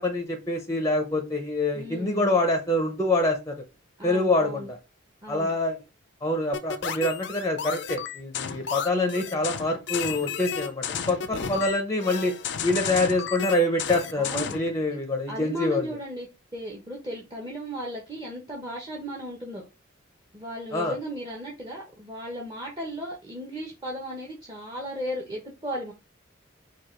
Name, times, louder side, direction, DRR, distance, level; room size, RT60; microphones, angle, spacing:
voice 1, 0.0-3.6 4.0-4.8 5.3-5.8 6.2-12.4 12.6-15.9 20.7-21.0, left 2 dB, 15° left, 0.6 m, -26 dB
voice 2, 1.7-2.3 4.0-4.7 5.2-5.5 11.4-11.7 14.2-14.5 15.3-16.3 16.5-19.6 20.3-25.9, right 1 dB, 20° right, 0.9 m, -35 dB
sound 1, 6.5-14.7, left 7 dB, 60° left, 0.5 m, -32 dB
4.6 x 2.4 x 4.4 m
head